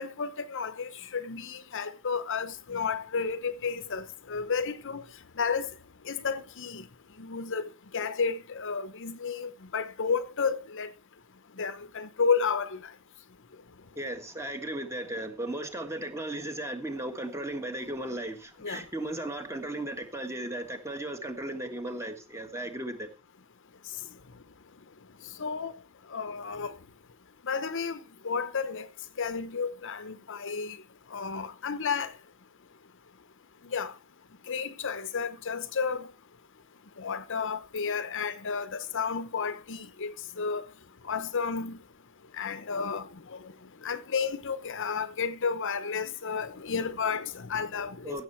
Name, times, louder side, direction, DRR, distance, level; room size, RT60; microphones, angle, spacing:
voice 1, 0.0-5.0 5.4-5.7 6.1-6.8 7.2-10.9 11.6-12.8 18.6-18.8 25.4-25.7 26.1-26.7 27.5-28.0 28.2-28.9 29.2-30.8 31.1-32.1 33.7-33.9 34.5-36.1 37.0-40.6 41.1-41.8 42.4-43.1 43.8-48.2, left 5 dB, 55° left, 0.9 m, -32 dB
voice 2, 13.9-23.1 48.0-48.2, right 1 dB, 15° right, 1.7 m, -36 dB
15.5 x 6.8 x 4.5 m
head